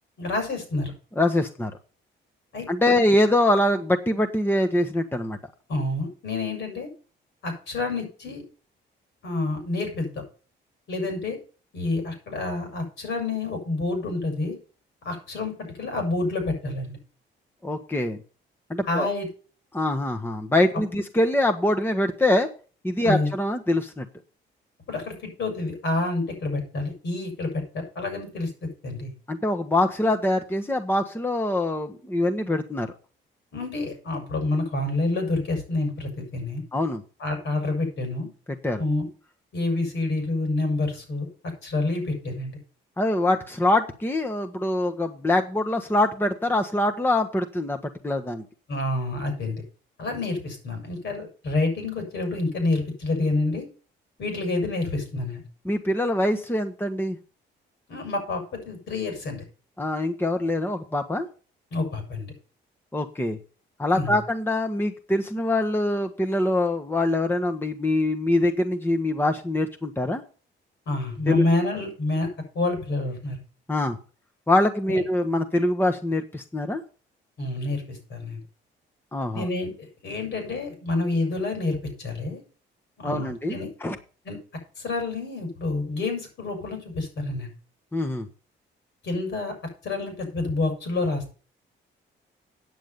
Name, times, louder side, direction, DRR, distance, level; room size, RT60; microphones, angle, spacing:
voice 1, 0.2-0.9 2.5-3.0 5.7-6.9 7.4-8.4 9.2-10.1 10.9-11.4 11.7-14.6 15.0-15.5 15.8-17.0 18.9-19.3 20.9-21.0 23.0-23.3 24.9-29.1 33.5-36.6 37.2-38.3 38.8-39.1 39.5-41.3 41.6-42.6 48.7-49.6 50.0-53.7 54.2-55.4 57.9-59.4 61.7-62.3 63.9-64.2 70.9-72.3 72.5-73.4 74.9-75.0 77.4-78.4 79.3-79.7 80.0-82.4 83.0-83.7 84.2-84.4 84.8-87.5 89.0-89.5 89.8-91.3, left 2 dB, 70° left, 4 dB, 6.1 m, -28 dB
voice 2, 1.2-1.7 2.7-5.4 17.6-18.2 18.7-19.1 19.7-22.5 22.8-24.0 29.3-32.9 36.7-37.0 38.6-38.8 43.0-47.8 48.0-48.4 55.6-57.2 59.8-61.3 62.9-63.4 63.8-70.2 71.3-71.4 73.7-74.0 74.5-76.8 79.1-79.5 83.0-84.0 87.9-88.3, left 1 dB, 10° left, 6 dB, 1.2 m, -24 dB
9.4 x 7.2 x 6.8 m, 0.38 s
cardioid pair, 90°, 20 cm